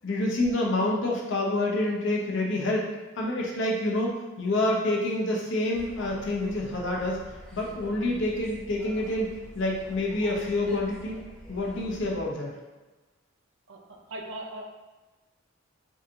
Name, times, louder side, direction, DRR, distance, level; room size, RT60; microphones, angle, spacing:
voice 1, 0.0-2.8 3.2-7.2 7.5-9.3 9.5-11.2 11.5-12.6, left 1 dB, 65° left, -2 dB, 0.8 m, -27 dB
sound 1, 5.7-12.2, equal, 5° left, 0.8 m, -46 dB
voice 2, 13.7-14.6, right 1 dB, 65° right, 1 dB, 0.6 m, -39 dB
4.8 x 2.5 x 2.8 m, 1.2 s
head